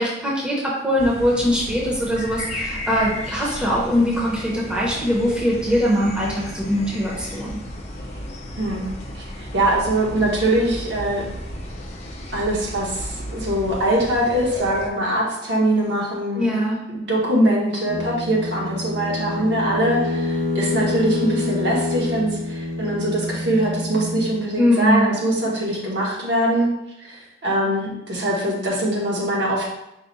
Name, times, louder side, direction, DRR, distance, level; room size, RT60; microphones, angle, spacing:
voice 1, 0.0-7.6 16.3-16.8 24.6-25.1, equal, 5° right, -5 dB, 0.7 m, -21 dB
sound 1, 1.0-14.9, left 1 dB, 35° left, 0.5 m, -34 dB
voice 2, 8.6-11.3 12.3-16.5 16.9-26.7 27.0-29.7, right 1 dB, 65° right, -3 dB, 1.0 m, -22 dB
sound 2, 17.9-24.4, left 2 dB, 80° right, 0.7 m, -27 dB
4.8 x 2.2 x 3.9 m, 0.89 s
head